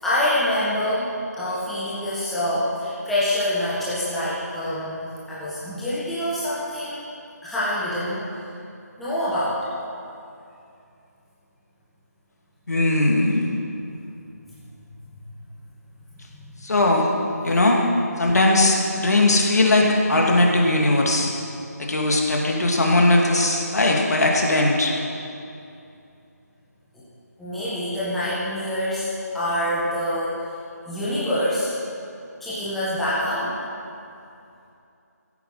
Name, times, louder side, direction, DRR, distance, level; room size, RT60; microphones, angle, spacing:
voice 1, 0.0-7.0 7.4-8.4 9.0-9.6 16.4-16.5 27.4-30.5 30.9-31.8 32.4-33.5, left 1 dB, ahead, -11 dB, 1.5 m, -26 dB
voice 2, 12.7-13.5 16.6-17.1 17.4-17.8 18.2-21.3 21.8-24.9, left 2 dB, 70° left, 0 dB, 2.5 m, -19 dB
16.0 x 9.0 x 5.7 m, 2.6 s
figure-of-eight pair, 170°, 9 cm